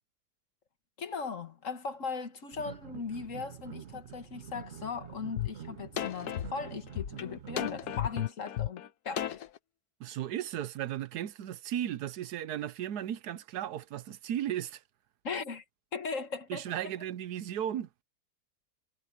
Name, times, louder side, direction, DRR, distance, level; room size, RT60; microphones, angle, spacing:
voice 1, 1.0-9.4 15.2-15.6 15.9-16.9, left 5 dB, 55° left, 1.7 m, -38 dB
sound 1, 2.5-8.2, right 8 dB, 55° right, 0.9 m, -47 dB
sound 2, 5.4-5.5 6.0-9.6, left 12 dB, 75° left, 1.4 m, -34 dB
voice 2, 10.0-14.8 16.5-17.9, right 11 dB, 80° right, 1.3 m, -35 dB
omnidirectional pair, 1.7 m